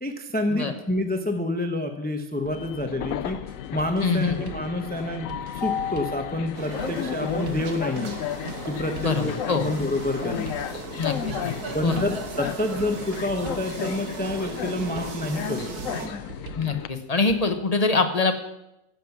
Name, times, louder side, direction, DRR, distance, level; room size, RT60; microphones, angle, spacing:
voice 1, 0.0-3.4 3.7-8.2 8.6-10.5 11.7-16.2, left 1 dB, 10° left, 5 dB, 0.6 m, -28 dB
Train, 2.5-16.9, left 10 dB, 70° left, 0.9 m, -34 dB
sound 1, 3.3-17.4, right 6 dB, 70° right, 1.4 m, -44 dB
voice 2, 4.0-4.4 9.0-9.7 11.0-11.5 11.8-12.0 16.5-18.3, left 4 dB, 30° left, 6 dB, 1.0 m, -24 dB
sound 2, 6.5-16.1, right 4 dB, 90° right, 1.7 m, -37 dB
15.0 x 7.4 x 5.9 m, 0.91 s
omnidirectional pair, 1.6 m